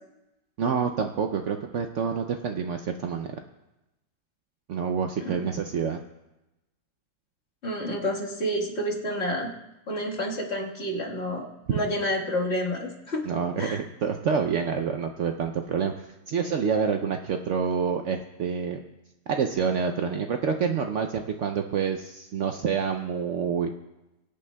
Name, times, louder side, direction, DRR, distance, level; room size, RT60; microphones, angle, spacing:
voice 1, 0.6-3.3 4.7-6.0 13.3-18.8 19.3-23.7, right 6 dB, 80° right, 5 dB, 0.6 m, -27 dB
voice 2, 7.6-9.5 9.9-13.3 13.6-13.8, equal, 40° left, -2 dB, 1.8 m, -29 dB
23.0 x 8.7 x 2.2 m, 0.96 s
omnidirectional pair, 1.9 m